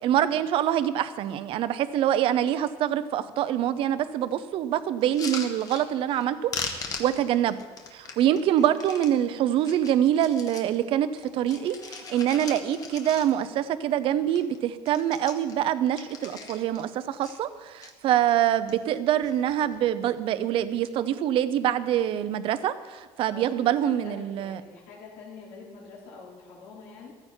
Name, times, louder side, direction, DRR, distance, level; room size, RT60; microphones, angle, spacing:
voice 1, 0.0-7.6 7.9-11.1 11.3-24.6, right 11 dB, 45° right, 13 dB, 0.7 m, -25 dB
sound 1, 5.0-6.3 6.5-9.1 9.6-10.8 11.1-13.6 13.9-14.0 14.3-14.6 14.8-16.9 17.2-17.9 18.5-19.0 19.2-19.8 20.6-20.9, left 4 dB, 30° left, 1.4 m, -39 dB
voice 2, 18.0-18.4 23.3-27.1, left 4 dB, 85° left, -5 dB, 4.7 m, -46 dB
15.0 x 14.0 x 4.5 m, 1.4 s
cardioid pair, 170°, 12 cm